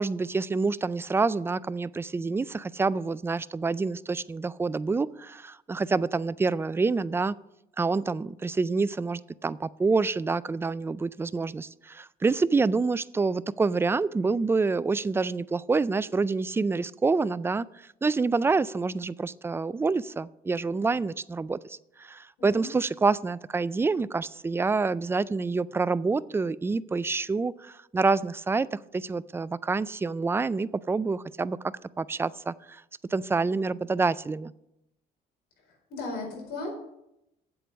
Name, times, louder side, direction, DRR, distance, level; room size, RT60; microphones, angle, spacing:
voice 1, 0.0-7.3 7.8-17.7 18.0-31.6 32.0-32.8 33.1-34.5, right 4 dB, 15° right, 17 dB, 0.3 m, -27 dB
voice 2, 22.4-22.7 35.9-36.7, left 2 dB, 80° left, 0 dB, 4.6 m, -35 dB
8.3 x 7.8 x 6.3 m, 0.83 s
cardioid pair, 110°, 17 cm